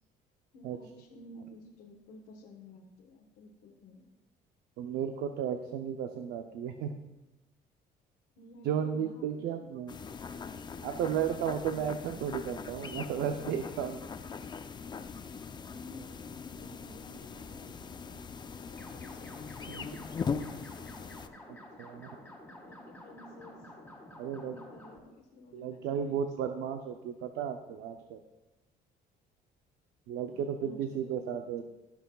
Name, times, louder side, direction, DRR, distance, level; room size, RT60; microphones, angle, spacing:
voice 1, 0.5-4.1 8.4-9.3 9.6-9.7 11.7-11.9 14.3-14.4 15.3-20.3 22.5-23.7 24.2-26.2 30.3-31.6, left 2 dB, 85° left, -3 dB, 1.3 m, -53 dB
voice 2, 4.8-7.0 8.6-10.0 10.8-14.1 19.7-20.0 21.5-22.1 24.2-24.6 25.5-28.2 30.1-31.6, right 8 dB, 85° right, 6 dB, 0.6 m, -34 dB
sound 1, 9.9-21.3, left 5 dB, 25° left, 0.5 m, -41 dB
sound 2, 18.7-25.0, left 1 dB, 10° left, 2.0 m, -50 dB
17.0 x 5.8 x 2.3 m, 1.0 s
cardioid pair, 110°, 17 cm